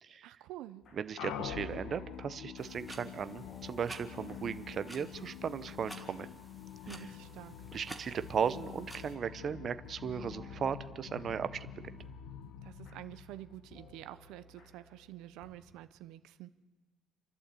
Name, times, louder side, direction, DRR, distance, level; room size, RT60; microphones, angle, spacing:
voice 1, 0.2-0.8 6.9-7.6 12.6-16.5, right 14 dB, 75° right, 12 dB, 0.7 m, -48 dB
sound 1, 0.8-15.8, left 3 dB, 40° left, 3.7 m, -60 dB
voice 2, 0.9-6.3 6.9-7.1 7.7-11.7, right 7 dB, 35° right, 12 dB, 0.8 m, -36 dB
sound 2, 1.2-14.0, left 8 dB, 80° left, 1.4 m, -46 dB
sound 3, 2.6-9.1, right 1 dB, ahead, 1.8 m, -52 dB
29.5 x 11.5 x 8.4 m, 1.2 s
cardioid pair, 160°, 0 cm